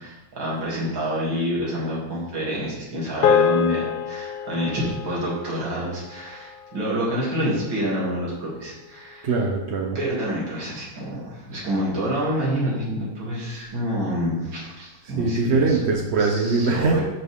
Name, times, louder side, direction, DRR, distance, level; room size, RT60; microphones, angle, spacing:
voice 1, 0.0-9.3 10.0-15.8 16.2-17.0, equal, 80° right, -6 dB, 3.5 m, -27 dB
sound 1, 3.2-7.7, left 7 dB, 85° left, 0.7 m, -26 dB
voice 2, 9.2-10.0 15.0-17.0, right 3 dB, 55° right, 1 dB, 0.8 m, -22 dB
12.0 x 6.4 x 3.7 m, 1.0 s
omnidirectional pair, 2.1 m